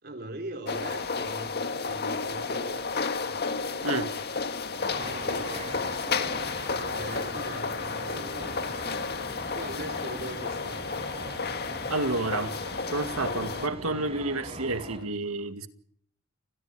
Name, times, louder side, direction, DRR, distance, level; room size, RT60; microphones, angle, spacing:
voice 1, 0.0-2.9 3.2-4.0 5.0-5.7 6.7-9.1 9.5-10.9, right 1 dB, 50° right, 3.8 m, -42 dB
sound 1, 0.7-13.7, left 4 dB, 50° left, 1.8 m, -32 dB
voice 2, 3.8-4.1 11.9-12.6 12.9-15.7, right 2 dB, 90° right, 2.1 m, -30 dB
sound 2, 4.8-15.0, right 2 dB, 30° right, 6.0 m, -41 dB
30.0 x 21.5 x 4.9 m
head